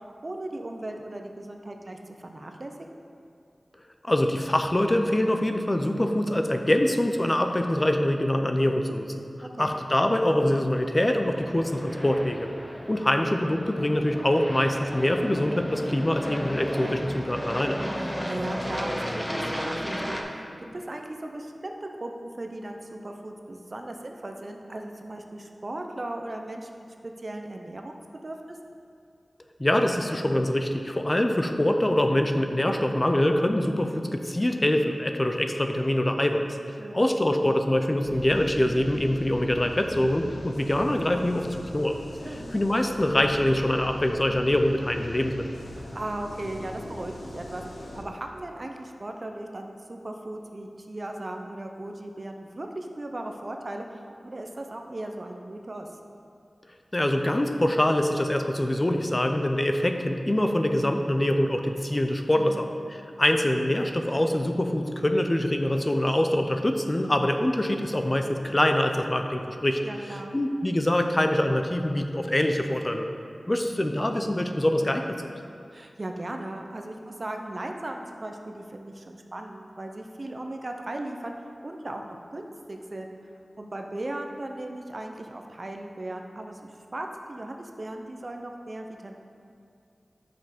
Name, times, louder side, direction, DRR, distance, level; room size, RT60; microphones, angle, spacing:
voice 1, 0.0-2.7 9.4-9.8 18.0-20.4 20.7-26.7 27.0-28.0 28.2-28.6 36.8-37.1 42.2-42.5 45.8-55.9 62.3-62.7 69.8-70.4 75.7-83.1 83.6-89.1, right 1 dB, 45° right, 3 dB, 0.6 m, -37 dB
voice 2, 4.0-9.2 9.6-12.5 12.9-17.8 29.6-42.0 42.5-45.4 56.9-69.8 70.3-73.1 73.5-75.2, left 1 dB, 25° left, 5 dB, 0.5 m, -24 dB
Aircraft, 11.0-20.2, equal, 5° left, 0.8 m, -34 dB
sound 1, 38.0-48.0, left 1 dB, 80° left, 0.7 m, -41 dB
5.9 x 5.3 x 5.0 m, 2.4 s
wide cardioid pair, 55°, 0 cm